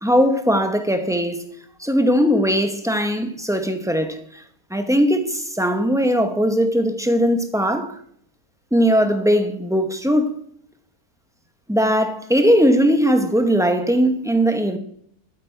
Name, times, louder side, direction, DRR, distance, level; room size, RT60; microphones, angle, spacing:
voice 1, 0.0-1.4 1.8-4.4 4.7-8.0 8.7-10.4 11.7-14.8, equal, 5° right, 0.7 m, -19 dB
12.0 x 8.6 x 4.5 m
omnidirectional pair, 1.7 m